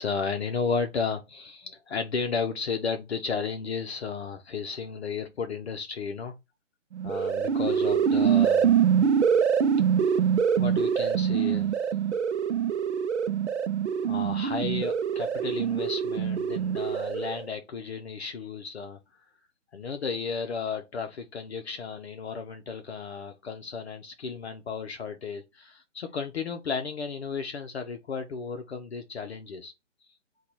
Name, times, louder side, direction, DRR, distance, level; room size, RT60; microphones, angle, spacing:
voice 1, 0.0-6.3 7.0-8.7 10.6-11.9 14.0-19.0 19.7-29.7, left 5 dB, 55° left, 0.7 m, -33 dB
sound 1, 6.9-17.5, right 8 dB, 60° right, 0.5 m, -25 dB
3.9 x 2.3 x 4.4 m
figure-of-eight pair, 150°, 38 cm